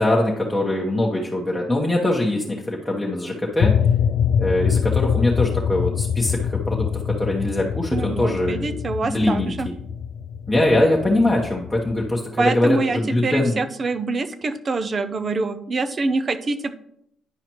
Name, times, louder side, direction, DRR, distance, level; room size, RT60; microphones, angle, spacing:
voice 1, 0.0-3.7 4.4-8.7 9.0-9.7 10.5-13.6, left 1 dB, 10° left, -3 dB, 1.1 m, -22 dB
sound 1, 3.6-12.1, left 7 dB, 65° left, 0.4 m, -24 dB
voice 2, 7.9-9.7 12.4-16.7, right 3 dB, 40° right, 11 dB, 0.6 m, -25 dB
10.5 x 4.9 x 3.1 m, 0.73 s
cardioid pair, 90°, 0 cm